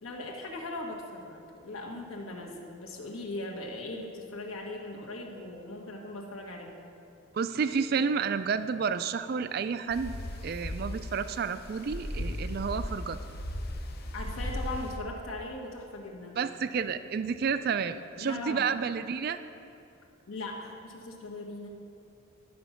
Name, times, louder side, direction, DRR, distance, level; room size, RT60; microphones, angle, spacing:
voice 1, 0.0-6.8 14.1-16.4 18.2-18.6 20.3-21.7, left 2 dB, 75° left, 0 dB, 1.3 m, -39 dB
voice 2, 7.3-10.1 10.4-13.2 16.3-19.4, right 6 dB, 45° right, 12 dB, 0.3 m, -30 dB
sound 1, 9.9-15.0, left 1 dB, 45° left, 0.6 m, -37 dB
11.0 x 6.0 x 5.7 m, 2.6 s
head